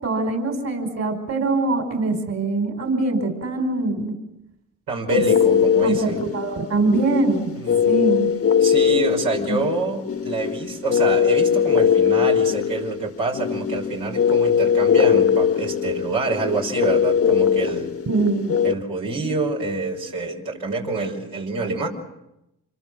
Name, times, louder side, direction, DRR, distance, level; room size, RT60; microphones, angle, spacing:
voice 1, 0.0-4.1 5.1-5.2 5.8-7.5 7.8-8.3 9.5-9.6 18.1-18.5, right 3 dB, 50° right, 6 dB, 5.2 m, -23 dB
voice 2, 4.9-6.2 7.6-8.0 8.6-17.9 18.6-21.9, right 3 dB, 80° right, -1 dB, 5.5 m, -27 dB
sound 1, 5.1-18.7, left 7 dB, 40° left, 1.2 m, -20 dB
27.0 x 22.5 x 7.8 m, 0.88 s
supercardioid pair, 60°, 35 cm